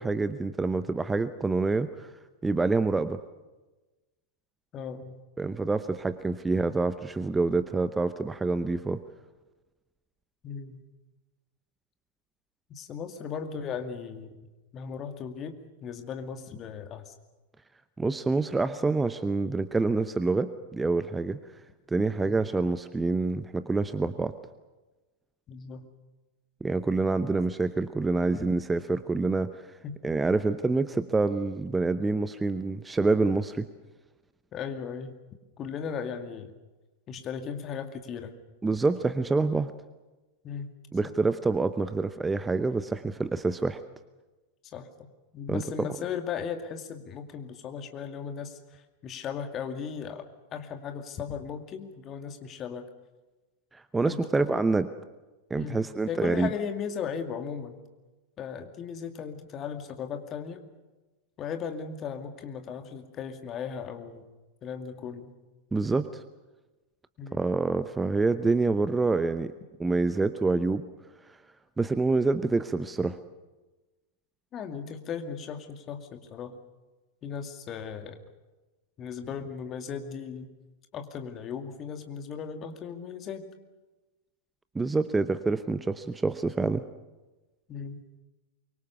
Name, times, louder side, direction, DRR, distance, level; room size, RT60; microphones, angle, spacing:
voice 1, 0.0-2.1 2.4-3.2 5.4-9.0 18.0-21.4 21.9-24.3 26.6-29.7 30.0-33.7 38.6-39.7 40.9-43.8 45.5-45.9 53.7-54.9 55.5-56.5 65.7-66.2 67.3-69.5 69.8-70.8 71.8-73.2 84.7-86.8, right 3 dB, 10° right, 13 dB, 0.8 m, -27 dB
voice 2, 4.7-5.2 10.4-10.8 12.7-14.4 14.7-17.1 25.5-25.9 28.4-28.5 29.8-30.0 34.5-35.2 35.6-36.5 37.1-38.3 40.4-40.7 44.7-45.1 45.3-52.8 54.0-54.5 55.5-55.8 56.1-57.8 58.4-60.6 61.4-64.2 64.6-65.4 67.2-67.4 74.5-76.6 77.2-78.2 79.0-80.5 80.9-83.4 87.7-88.0, left 7 dB, 30° left, 7 dB, 2.3 m, -37 dB
24.0 x 23.5 x 7.0 m, 1.2 s
figure-of-eight pair, 90°, 0 cm